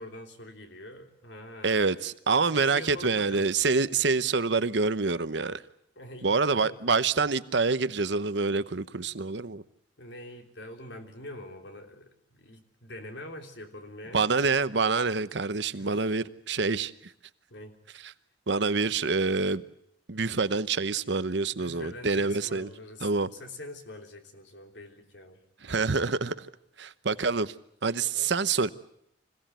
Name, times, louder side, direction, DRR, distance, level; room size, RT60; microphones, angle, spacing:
voice 1, 0.0-2.0 2.5-3.5 6.0-6.9 10.0-14.3 15.7-16.1 17.5-17.7 21.5-25.4 28.1-28.3, left 1 dB, 75° left, 3.5 m, -44 dB
voice 2, 1.6-5.6 6.2-9.6 14.1-16.9 18.5-19.6 20.1-22.7 23.0-23.3 25.6-26.5 26.8-27.5 27.8-28.7, right 4 dB, 75° right, 0.9 m, -26 dB
26.0 x 17.0 x 9.2 m
head